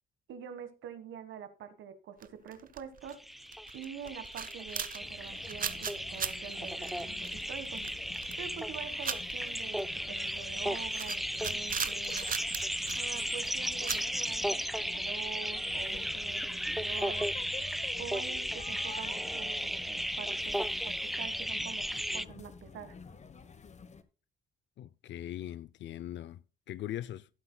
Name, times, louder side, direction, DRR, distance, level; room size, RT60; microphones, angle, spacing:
voice 1, 0.3-3.2 3.7-7.8 8.4-12.3 12.9-17.3 18.0-21.8 22.1-22.9, right 8 dB, 80° right, 1.6 m, -46 dB
sound 1, 2.2-3.1 3.4-14.8, right 7 dB, 45° right, 0.9 m, -40 dB
sound 2, 3.1-22.2, equal, ahead, 0.4 m, -35 dB
sound 3, 5.0-24.0, left 5 dB, 35° left, 1.1 m, -50 dB
voice 2, 24.8-27.3, left 12 dB, 65° left, 0.6 m, -41 dB
17.0 x 8.0 x 2.3 m
cardioid pair, 90°, 20 cm